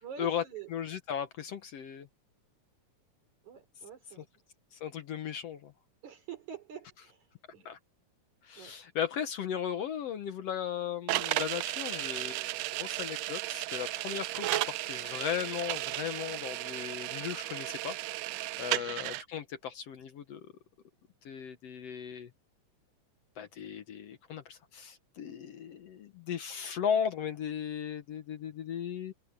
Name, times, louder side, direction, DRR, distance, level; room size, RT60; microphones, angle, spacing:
voice 1, 0.0-0.7 3.4-4.3 6.0-7.7 8.6-8.8 14.0-14.3 18.8-19.0, right 9 dB, 70° right, 5.2 m, -46 dB
voice 2, 0.7-2.1 4.7-5.7 7.7-7.8 8.4-18.0 18.6-20.5 21.3-22.3 23.4-29.1, left 8 dB, 65° left, 1.9 m, -36 dB
sound 1, 11.1-19.2, right 16 dB, 85° right, 1.5 m, -34 dB
omnidirectional pair, 3.5 m